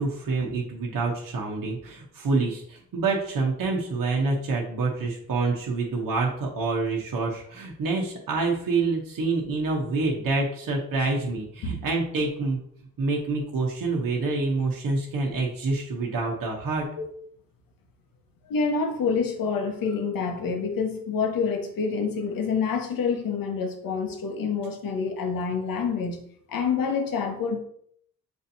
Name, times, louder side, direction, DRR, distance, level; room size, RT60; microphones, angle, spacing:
voice 1, 0.0-12.6 13.0-16.8, right 3 dB, 60° right, -1 dB, 1.0 m, -27 dB
voice 2, 18.4-26.2 26.5-27.6, left 5 dB, 65° left, 4 dB, 1.0 m, -27 dB
6.5 x 2.7 x 2.7 m, 0.65 s
supercardioid pair, 55°, 37 cm